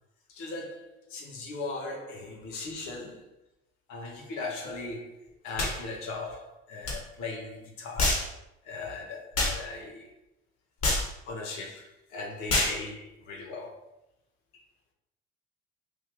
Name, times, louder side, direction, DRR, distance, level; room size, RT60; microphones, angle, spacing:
voice 1, 0.3-3.3 3.9-5.1 5.4-8.2 8.7-10.1 11.3-13.7, left 3 dB, 70° left, 1 dB, 1.0 m, -38 dB
sound 1, 5.6-5.8 6.8-7.0 8.0-8.3 9.3-9.6 10.8-11.1 12.5-12.8, left 2 dB, 50° left, 1.5 m, -26 dB
3.2 x 2.8 x 3.6 m, 0.87 s
hypercardioid pair, 70°, 32 cm